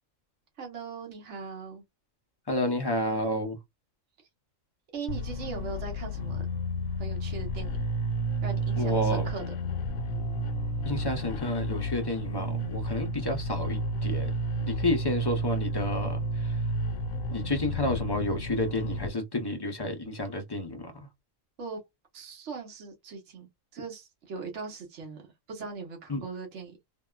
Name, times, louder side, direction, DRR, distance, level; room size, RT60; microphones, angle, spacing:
voice 1, 0.6-1.8 4.9-6.5 7.0-7.8 8.4-9.5 21.6-21.8 22.1-23.5 23.7-25.2 25.5-26.8, right 4 dB, 60° right, 1.3 m, -39 dB
voice 2, 2.5-3.6 8.8-9.3 10.9-14.3 14.7-16.6 17.3-20.9 26.1-26.2, left 1 dB, 30° left, 0.4 m, -30 dB
sound 1, 5.1-19.1, right 1 dB, 85° left, 1.0 m, -31 dB
3.4 x 2.2 x 2.3 m
omnidirectional pair, 1.4 m